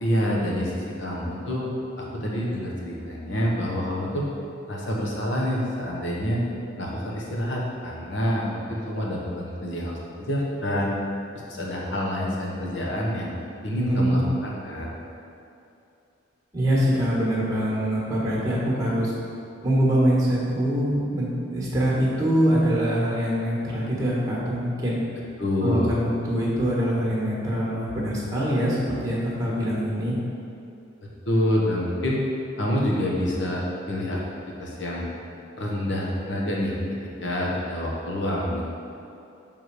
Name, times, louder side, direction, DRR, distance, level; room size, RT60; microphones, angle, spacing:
voice 1, 0.0-1.7 2.0-4.2 4.7-6.4 6.8-10.9 11.5-14.9 25.4-25.9 31.3-32.2 32.6-33.6 33.9-34.2 34.6-35.1 35.6-38.6, equal, 70° left, -3 dB, 1.1 m, -27 dB
voice 2, 13.9-14.3 16.5-19.1 19.6-25.0 25.6-30.2, equal, 20° right, -6 dB, 1.3 m, -24 dB
6.6 x 3.7 x 4.6 m, 2.7 s
head